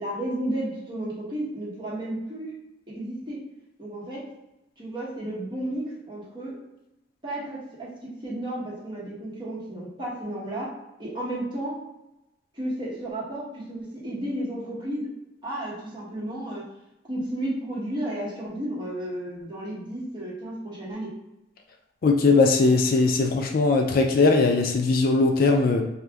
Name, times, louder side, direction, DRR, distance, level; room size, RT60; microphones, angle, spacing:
voice 1, 0.0-2.5 2.9-3.4 3.8-4.2 4.8-6.5 7.2-7.9 8.2-10.7 11.0-11.8 12.5-15.1 15.4-16.7 17.1-21.1, right 1 dB, 25° right, -7 dB, 1.2 m, -32 dB
voice 2, 22.0-25.8, left 3 dB, 50° left, 3 dB, 0.4 m, -20 dB
2.9 x 2.5 x 3.4 m, 0.94 s
head